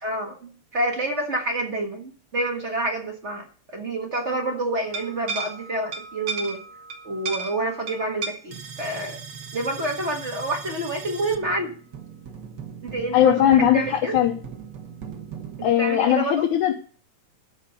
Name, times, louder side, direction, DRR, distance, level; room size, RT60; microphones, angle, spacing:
voice 1, 0.0-6.6 7.0-9.2 9.5-11.7 12.8-14.2 15.6-16.4, right 2 dB, 35° right, 2 dB, 1.1 m, -28 dB
sound 1, 4.9-15.7, right 5 dB, 60° right, 1.1 m, -37 dB
voice 2, 13.1-14.3 15.6-16.7, left 10 dB, 80° left, 1 dB, 2.3 m, -19 dB
12.5 x 5.1 x 6.6 m, 0.41 s
omnidirectional pair, 3.5 m